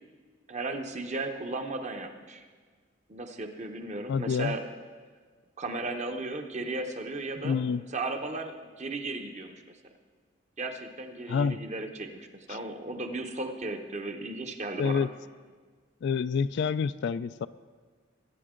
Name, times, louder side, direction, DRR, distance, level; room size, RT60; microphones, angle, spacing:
voice 1, 0.5-2.5 3.1-4.6 5.6-7.6 7.9-9.8 10.6-15.1, right 2 dB, 35° right, 5 dB, 1.0 m, -35 dB
voice 2, 4.1-4.5 7.4-7.8 11.3-11.6 12.5-12.6 14.8-15.1 16.0-17.5, left 6 dB, 60° left, 16 dB, 0.3 m, -28 dB
21.0 x 9.7 x 3.8 m, 1.5 s
head